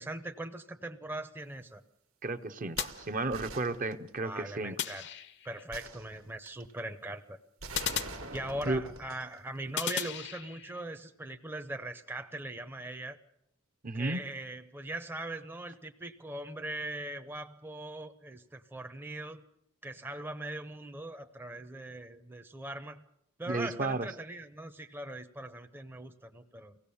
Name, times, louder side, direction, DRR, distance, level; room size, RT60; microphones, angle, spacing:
voice 1, 0.0-1.8 4.2-5.0 5.4-7.4 8.3-13.2 13.9-19.4 19.8-23.0 23.4-26.8, right 1 dB, 10° right, 6 dB, 0.7 m, -40 dB
voice 2, 2.2-4.7 8.6-8.8 13.8-14.2 23.5-24.1, right 2 dB, 40° right, 11 dB, 0.8 m, -33 dB
sound 1, 2.8-3.7 4.8-5.7 7.7-8.9 9.8-10.8, left 9 dB, 55° left, 0.7 m, -37 dB
sound 2, 2.8-4.3 5.7-6.7 7.6-9.4 9.8-9.9, right 3 dB, 70° right, 1.5 m, -45 dB
24.0 x 17.0 x 7.0 m, 0.81 s
head